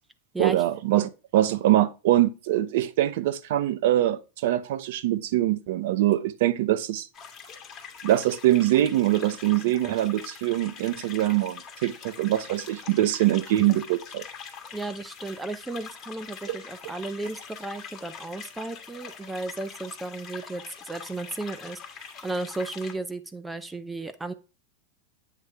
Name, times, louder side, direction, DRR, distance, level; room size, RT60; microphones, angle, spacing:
voice 1, 0.4-7.1 8.0-14.2 16.5-16.6, right 14 dB, 70° right, 0.6 m, -23 dB
sound 1, 7.1-23.0, left 6 dB, 30° left, 1.5 m, -43 dB
voice 2, 14.7-24.3, right 2 dB, 10° right, 0.6 m, -34 dB
8.4 x 3.2 x 4.7 m
hypercardioid pair, 115°, 0 cm